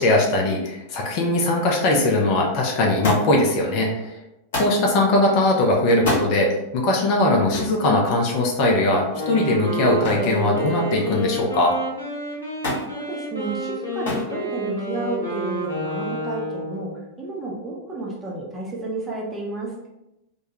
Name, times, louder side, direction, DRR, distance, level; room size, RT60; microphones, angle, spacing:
voice 1, 0.0-4.1 4.5-11.7, left 1 dB, 45° left, 0 dB, 0.5 m, -20 dB
Thump thud, 3.0-3.5 4.5-4.8 5.9-6.3 7.5-7.8 10.0-10.4 10.7-11.3 12.6-12.9 14.0-14.3 15.3-15.7 16.7-16.8, left 1 dB, 60° left, 1.0 m, -27 dB
Wind instrument woodwind instrument, 9.1-17.0, equal, 80° left, 0.8 m, -30 dB
voice 2, 12.9-19.9, right 2 dB, 15° right, -3 dB, 0.7 m, -31 dB
2.2 x 2.2 x 2.9 m, 0.90 s
figure-of-eight pair, 90°, 0 cm